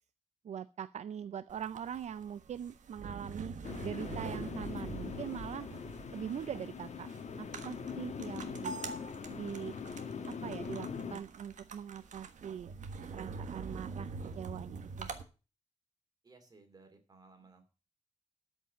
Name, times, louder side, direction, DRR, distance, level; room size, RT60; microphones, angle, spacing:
voice 1, 0.4-3.5 3.8-5.7 6.1-7.1 7.4-8.7 9.3-9.7 10.2-12.7 13.1-15.1, right 8 dB, 65° right, 13 dB, 0.5 m, -42 dB
sound 1, 1.5-15.2, right 4 dB, 90° right, 1.4 m, -45 dB
sound 2, 3.6-11.2, left 6 dB, 65° left, 1.2 m, -42 dB
voice 2, 16.2-17.7, right 3 dB, 30° right, 5 dB, 2.7 m, -59 dB
13.0 x 5.4 x 7.5 m, 0.34 s
wide cardioid pair, 180°, 13 cm